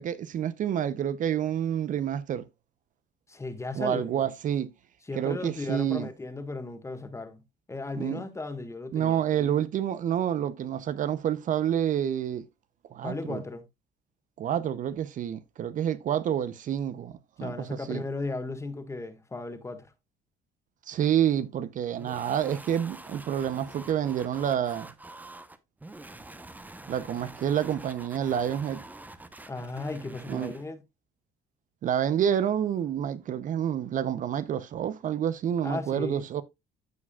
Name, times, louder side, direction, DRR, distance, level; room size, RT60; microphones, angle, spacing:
voice 1, 0.0-2.5 3.8-4.7 5.1-6.1 8.0-8.2 8.9-12.4 12.9-13.4 14.4-18.0 20.9-24.9 26.9-28.8 30.3-30.5 31.8-36.4, right 9 dB, 50° right, 0.6 m, -28 dB
voice 2, 3.3-4.3 5.0-7.4 7.7-9.6 13.0-13.6 17.4-19.9 29.5-30.8 35.6-36.2, left 3 dB, 15° left, 1.5 m, -36 dB
sound 1, 21.9-30.7, right 2 dB, 10° right, 0.8 m, -46 dB
14.5 x 4.8 x 2.3 m
cardioid pair, 110°, 17 cm